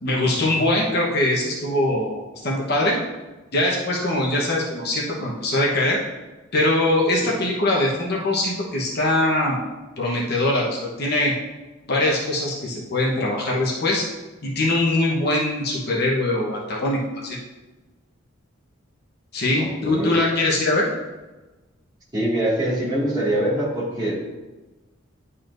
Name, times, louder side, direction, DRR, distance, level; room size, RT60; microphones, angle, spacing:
voice 1, 0.0-3.0 3.5-6.0 6.5-9.6 10.0-11.3 11.9-14.1 14.4-17.4 19.3-20.9, left 1 dB, 50° left, -3 dB, 1.1 m, -22 dB
voice 2, 19.6-20.1 22.1-24.2, right 1 dB, 20° right, -8 dB, 1.9 m, -24 dB
10.5 x 4.1 x 2.6 m, 1.2 s
head